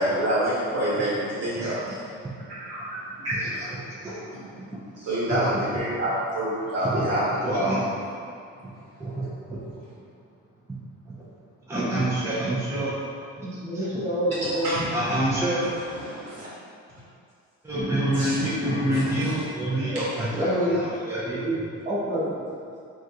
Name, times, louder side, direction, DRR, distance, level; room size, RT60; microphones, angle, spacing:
voice 1, 0.0-1.8 2.5-2.8 3.2-3.6 5.0-7.2 14.5-14.9 15.9-16.5 18.1-18.3 18.9-19.3, right 1 dB, 55° right, -8 dB, 1.4 m, -27 dB
voice 2, 1.5-1.9 2.2-2.4 3.3-3.7 4.0-4.5 5.0-5.6 6.8-7.1 7.4-7.9 9.0-9.6 11.0-11.2 11.7-12.9 13.4-13.5 13.7-13.9 14.9-15.7 17.6-21.4, right 1 dB, 10° right, -9 dB, 0.6 m, -27 dB
voice 3, 13.4-14.7 20.3-20.8 21.2-21.6 21.8-22.3, equal, 25° right, -9 dB, 1.1 m, -27 dB
3.4 x 2.5 x 2.8 m, 2.4 s
cardioid pair, 90°, 30 cm